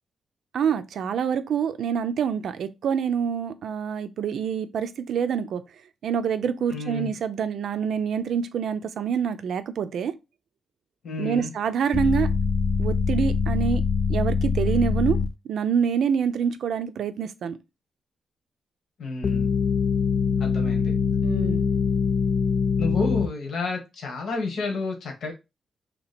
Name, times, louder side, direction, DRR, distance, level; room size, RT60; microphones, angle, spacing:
voice 1, 0.5-5.6 6.0-10.1 11.2-12.3 12.8-13.8 14.1-15.2 15.4-17.6 21.2-21.7, right 7 dB, 75° right, 0.4 m, -26 dB
voice 2, 6.7-7.1 11.0-11.5 19.0-19.5 20.4-20.9 22.8-25.3, left 3 dB, 75° left, 1.3 m, -30 dB
sound 1, 11.9-15.3 19.2-23.3, left 5 dB, 45° left, 0.4 m, -23 dB
2.9 x 2.9 x 4.2 m
cardioid pair, 115°, 0 cm